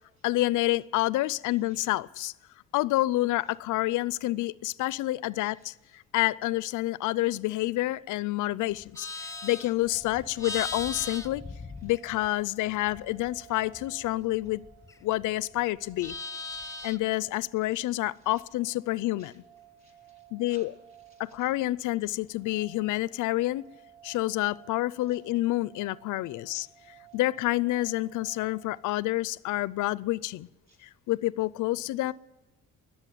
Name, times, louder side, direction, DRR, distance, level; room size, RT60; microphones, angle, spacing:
voice 1, 0.2-2.3 2.7-9.1 9.4-11.4 11.8-14.7 15.0-16.1 16.8-19.3 20.3-20.7 21.2-23.7 24.0-26.7 27.1-30.5 30.8-32.1, left 17 dB, 80° left, 0.5 m, -28 dB
voice 2, 1.4-1.9 5.5-5.7 9.3-9.5 10.2-10.8 11.8-11.9 17.6-18.3 19.2-19.4 19.8-21.5 25.0-25.2 26.5-26.7 27.1-27.2 30.7-30.9, right 2 dB, 65° right, 4.6 m, -62 dB
Livestock farm animals working animals, 8.7-12.4 12.7-15.3 15.6-17.2, left 3 dB, 10° left, 0.8 m, -40 dB
sound 1, 9.2-28.8, right 11 dB, 25° right, 3.8 m, -56 dB
21.0 x 7.4 x 9.2 m
cardioid pair, 90°, 30 cm